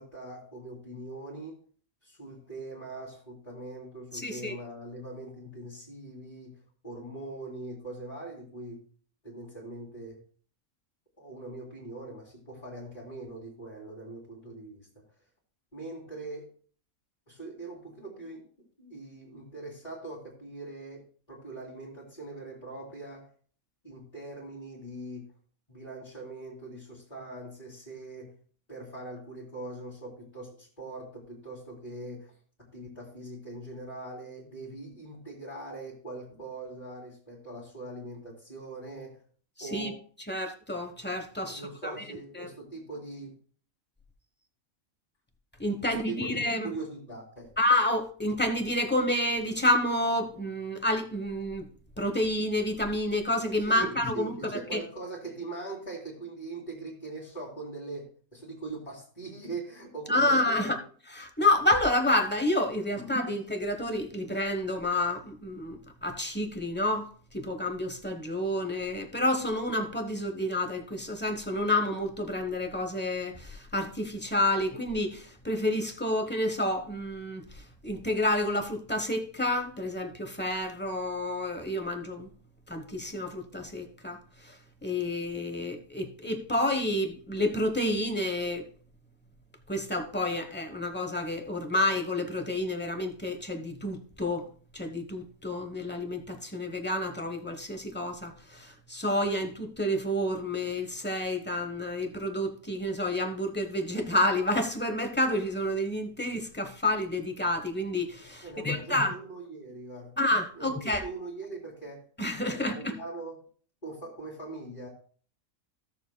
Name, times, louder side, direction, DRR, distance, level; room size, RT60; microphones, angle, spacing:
voice 1, 0.0-1.6 2.0-6.5 6.8-8.8 9.2-10.2 11.2-14.9 15.7-16.5 17.3-18.5 18.8-23.3 23.8-25.2 25.7-28.3 28.7-32.3 32.6-39.2 39.6-40.0 41.5-43.4 45.8-47.5 53.6-60.8 63.0-63.1 108.4-110.1 110.5-112.0 112.5-113.4 113.8-114.9, right 2 dB, 25° left, 2.6 m, -41 dB
voice 2, 4.1-4.5 39.6-39.9 40.3-41.9 42.3-42.5 45.6-46.7 47.6-51.7 52.0-54.8 60.1-60.8 61.1-82.3 82.7-84.6 84.8-88.7 89.7-94.5 94.7-109.1 110.2-111.0 112.2-112.9, left 1 dB, 10° left, 0.9 m, -29 dB
16.0 x 7.0 x 2.2 m
omnidirectional pair, 1.5 m